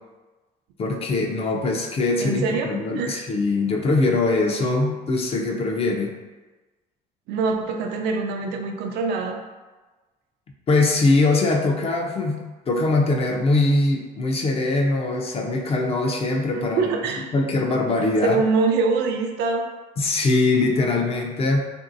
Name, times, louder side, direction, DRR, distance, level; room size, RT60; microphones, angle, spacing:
voice 1, 0.8-6.1 10.7-17.0 17.3-18.4 20.0-21.6, left 2 dB, 35° left, 1 dB, 0.5 m, -22 dB
voice 2, 2.2-2.7 3.0-3.2 7.3-9.4 16.8-17.3 18.2-19.7, right 4 dB, 80° right, 3 dB, 0.4 m, -24 dB
2.9 x 2.6 x 2.6 m, 1.2 s
cardioid pair, 110°, 17 cm